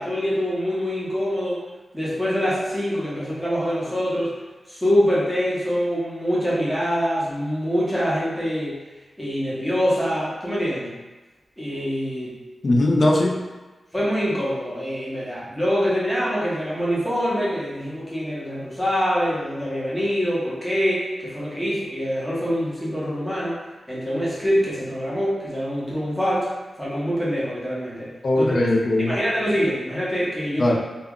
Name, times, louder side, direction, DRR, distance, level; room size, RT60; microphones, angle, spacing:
voice 1, 0.0-1.6 1.9-4.3 4.7-8.8 9.2-10.9 11.6-12.4 13.9-23.5 23.9-26.5 26.8-28.1 28.4-28.5 29.1-30.7, equal, ahead, -8 dB, 0.8 m, -24 dB
voice 2, 12.6-13.3 28.2-29.2 30.6-30.7, left 1 dB, 45° left, 0 dB, 0.4 m, -19 dB
2.3 x 2.1 x 3.5 m, 1.2 s
wide cardioid pair, 125°, 0 cm